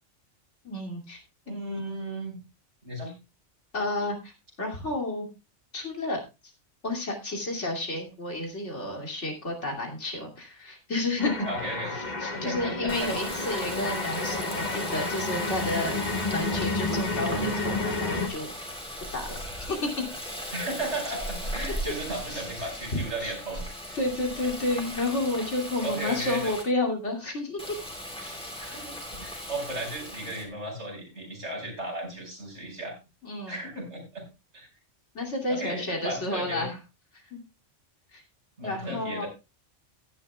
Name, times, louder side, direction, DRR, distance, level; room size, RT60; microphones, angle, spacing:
voice 1, 0.6-1.2 3.7-4.3 4.6-5.3 5.7-6.2 6.8-11.5 11.9-15.9 16.3-18.5 19.1-19.9 22.3-23.4 23.9-27.6 28.2-28.5 33.2-33.6 35.1-36.8 37.1-37.4 38.1-38.2 38.6-39.3, left 2 dB, 70° left, 1 dB, 3.0 m, -31 dB
voice 2, 1.5-2.4 2.8-3.1 11.4-11.9 12.3-13.1 20.5-24.0 25.8-26.5 28.6-32.9 33.5-34.2 34.5-34.7 35.5-36.7 38.6-39.3, right 1 dB, 65° right, 0 dB, 5.2 m, -35 dB
sound 1, 11.2-18.3, left 3 dB, 35° left, 1.6 m, -30 dB
Water tap faucet, 12.9-26.6 27.6-30.4, equal, 5° left, 2.7 m, -38 dB
16.5 x 11.0 x 2.3 m, 0.26 s
omnidirectional pair, 1.2 m